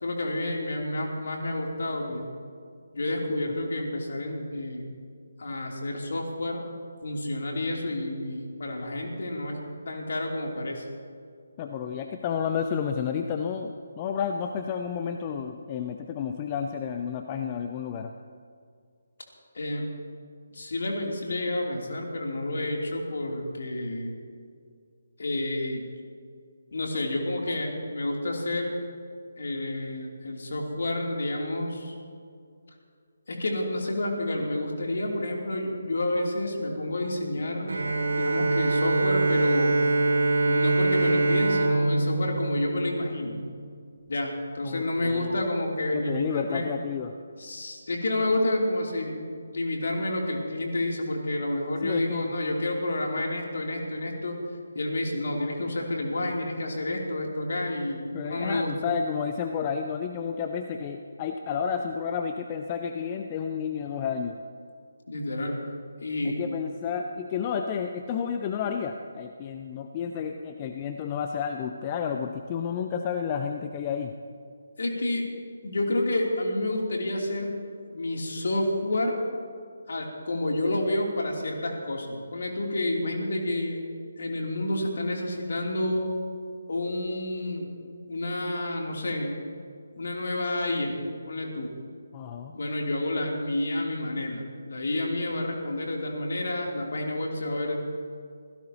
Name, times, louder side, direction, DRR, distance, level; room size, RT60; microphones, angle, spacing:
voice 1, 0.0-2.3 2.9-4.9 5.4-6.6 7.0-9.6 9.9-10.8 19.5-19.9 20.5-24.1 25.2-25.8 26.7-28.7 29.4-31.9 33.3-37.7 38.1-39.8 40.4-43.4 44.1-46.7 47.4-54.4 54.7-58.7 65.1-65.6 66.0-66.4 74.8-75.3 75.6-77.5 77.9-79.2 79.9-83.8 84.2-86.1 86.7-87.7 88.1-89.3 90.0-91.0 91.2-91.7 92.5-97.7, left 1 dB, 55° left, 0 dB, 3.0 m, -29 dB
voice 2, 11.6-18.1 44.6-45.4 45.9-47.1 51.8-52.3 58.1-64.4 66.2-74.1 92.1-92.6, left 7 dB, 25° left, 5 dB, 0.7 m, -31 dB
Bowed string instrument, 37.7-43.4, right 2 dB, 60° right, 2.3 m, -24 dB
27.0 x 16.5 x 2.9 m, 2.2 s
figure-of-eight pair, 145°, 0 cm